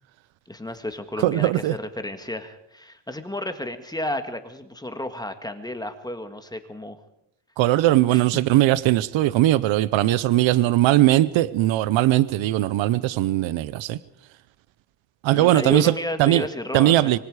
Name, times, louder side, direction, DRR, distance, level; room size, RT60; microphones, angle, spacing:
voice 1, 0.5-7.0 8.1-8.2 15.3-17.1, left 1 dB, 10° left, 7 dB, 1.7 m, -32 dB
voice 2, 1.2-1.8 7.6-14.0 15.2-16.4 16.7-17.2, right 15 dB, 85° right, 17 dB, 0.8 m, -19 dB
25.5 x 24.0 x 4.9 m, 0.76 s
cardioid pair, 125°, 45 cm